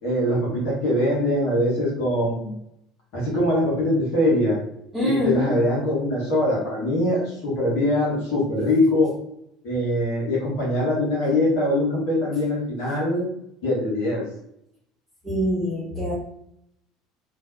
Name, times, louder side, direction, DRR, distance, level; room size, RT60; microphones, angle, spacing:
voice 1, 0.0-2.5 3.1-4.6 5.0-9.1 9.6-13.3 13.6-14.3, left 1 dB, 55° left, -5 dB, 1.2 m, -22 dB
voice 2, 4.9-5.5 15.2-16.1, equal, 5° right, -8 dB, 1.2 m, -25 dB
3.8 x 2.6 x 2.6 m, 0.77 s
figure-of-eight pair, 65°, 0 cm